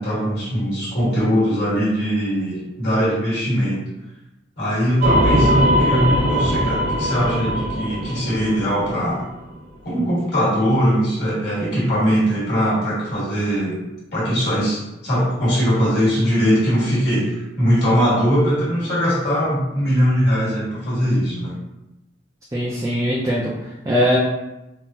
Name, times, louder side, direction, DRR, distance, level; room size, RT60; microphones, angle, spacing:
voice 1, 0.0-3.8 4.6-9.2 9.8-13.8 14.1-21.6, equal, 60° left, -7 dB, 1.4 m, -20 dB
sound 1, 5.0-9.4, equal, 55° right, 0.7 m, -20 dB
voice 2, 22.5-24.2, equal, 15° right, -5 dB, 0.4 m, -21 dB
3.6 x 2.0 x 2.7 m, 0.94 s
head